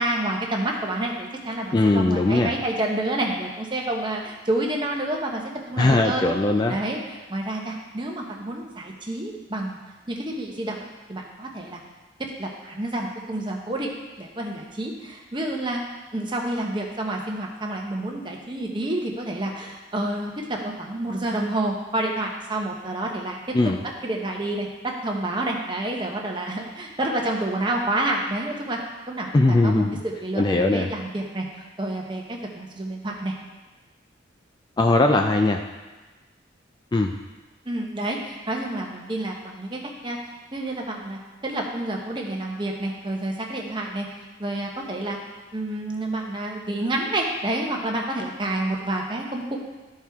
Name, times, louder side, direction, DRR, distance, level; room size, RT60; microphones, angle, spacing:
voice 1, 0.0-5.4 5.7-6.3 6.7-9.8 10.1-11.8 12.4-13.9 14.2-15.8 16.1-23.5 24.0-28.8 29.1-33.3 37.6-40.2 40.5-45.2 45.5-49.6, right 1 dB, 25° right, 0 dB, 1.0 m, -29 dB
voice 2, 1.7-2.5 5.8-6.8 23.5-23.8 29.3-30.0 30.4-30.9 34.8-35.6 36.9-37.1, left 2 dB, 20° left, 4 dB, 0.3 m, -20 dB
13.0 x 4.5 x 3.5 m, 1.2 s
head